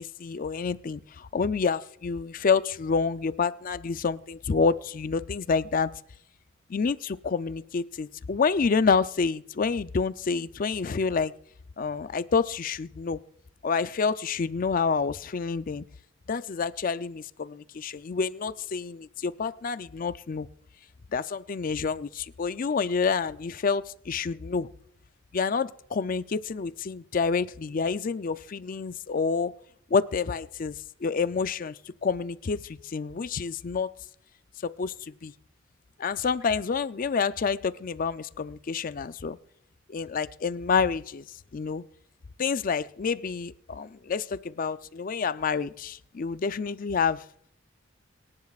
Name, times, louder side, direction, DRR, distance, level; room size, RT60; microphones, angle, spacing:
voice 1, 0.0-5.9 6.7-11.3 11.8-13.2 13.6-15.8 16.3-20.5 21.1-24.7 25.3-29.5 29.9-30.8 31.0-33.9 34.6-35.3 36.0-39.4 39.9-41.2 41.5-41.8 42.4-47.2, left 5 dB, 45° left, 14 dB, 0.4 m, -28 dB
24.5 x 10.5 x 2.4 m, 0.71 s
head